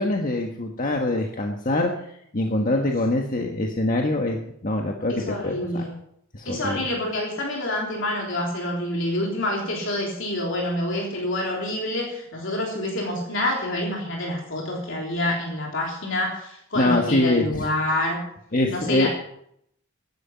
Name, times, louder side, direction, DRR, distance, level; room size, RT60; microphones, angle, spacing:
voice 1, 0.0-1.9 2.3-5.8 6.3-6.8 16.8-17.7 18.5-19.1, left 2 dB, 45° left, 2 dB, 1.5 m, -24 dB
voice 2, 5.1-5.9 6.4-18.2 18.7-19.1, left 1 dB, 65° left, -1 dB, 3.5 m, -27 dB
16.0 x 11.0 x 5.8 m, 0.72 s
head